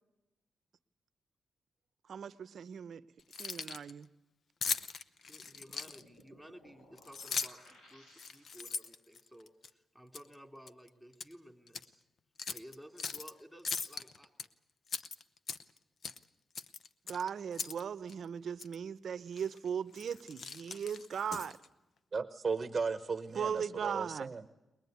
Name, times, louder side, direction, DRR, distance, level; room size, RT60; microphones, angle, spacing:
voice 1, 2.1-3.0 3.4-4.1 17.1-21.6 23.3-24.3, right 7 dB, 65° right, 0.8 m, -38 dB
Keys jangling, 3.2-3.9 4.6-6.2 7.0-7.7 8.1-9.7 10.1-10.3 10.7-11.3 11.7-11.8 12.4-13.3 13.6-14.5 14.9-15.8 16.0-16.2 16.5-17.8 18.1-18.2 18.6-18.8 19.4-19.6 19.9-21.7, left 5 dB, 55° left, 0.8 m, -39 dB
sound 1, 5.2-8.8, left 1 dB, 90° left, 6.1 m, -61 dB
voice 2, 5.3-12.0 12.5-14.3, equal, 5° left, 3.0 m, -55 dB
voice 3, 22.1-24.5, right 4 dB, 35° right, 1.0 m, -36 dB
21.5 x 21.5 x 9.4 m
cardioid pair, 100°, 0 cm